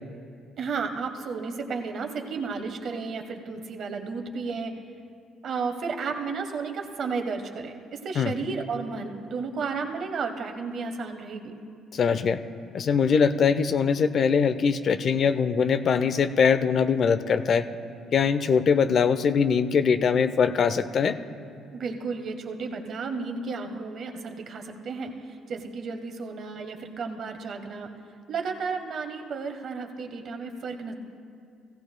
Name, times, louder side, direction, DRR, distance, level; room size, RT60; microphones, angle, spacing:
voice 1, 0.6-4.8 5.4-11.5 21.7-25.1 25.5-27.9 28.3-30.9, right 4 dB, 60° right, 5 dB, 1.1 m, -33 dB
voice 2, 11.9-12.4 12.7-17.6 18.1-21.2, left 6 dB, 55° left, 11 dB, 0.5 m, -22 dB
16.5 x 15.5 x 2.2 m, 2.3 s
supercardioid pair, 65°, 0 cm